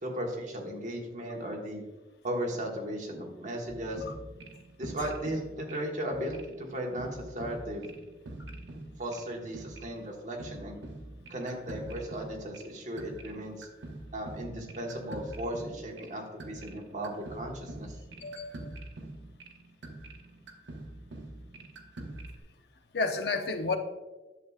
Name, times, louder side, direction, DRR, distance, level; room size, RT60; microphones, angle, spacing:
voice 1, 0.0-1.8 2.2-4.0 4.8-7.9 9.0-10.8 11.3-13.7 14.1-18.0, right 1 dB, 40° right, 0 dB, 1.3 m, -36 dB
sound 1, 3.7-22.4, right 2 dB, 80° right, 0.9 m, -45 dB
voice 2, 18.2-18.7 22.9-23.8, left 3 dB, 65° left, 7 dB, 0.7 m, -31 dB
10.5 x 7.2 x 2.4 m, 1.2 s
head